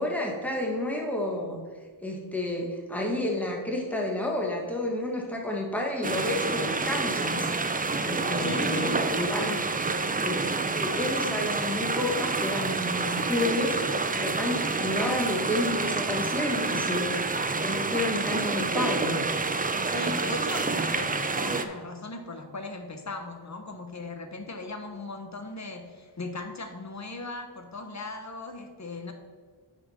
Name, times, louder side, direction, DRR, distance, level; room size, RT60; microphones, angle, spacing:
voice 1, 0.0-1.6 2.0-7.5 8.0-9.6 10.2-10.4 10.8-19.3, left 1 dB, 5° left, -1 dB, 1.5 m, -30 dB
sound 1, 6.0-21.7, right 3 dB, 20° right, 0.4 m, -28 dB
voice 2, 8.4-9.1 19.8-29.1, left 3 dB, 35° left, 5 dB, 1.0 m, -38 dB
9.7 x 4.5 x 4.4 m, 1.5 s
wide cardioid pair, 85°, 47 cm